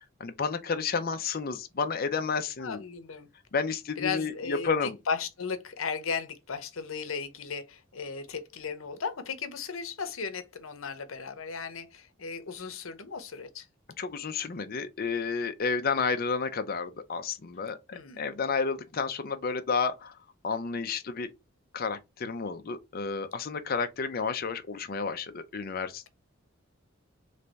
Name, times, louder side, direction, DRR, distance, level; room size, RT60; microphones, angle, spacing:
voice 1, 0.0-2.8 3.5-4.9 14.0-17.8 18.2-20.1 20.4-21.3 21.7-26.1, left 5 dB, 45° left, 0.5 m, -31 dB
voice 2, 2.6-3.3 4.0-4.7 5.1-13.7 17.9-18.2, left 5 dB, 80° left, 0.8 m, -36 dB
3.3 x 3.3 x 3.9 m
head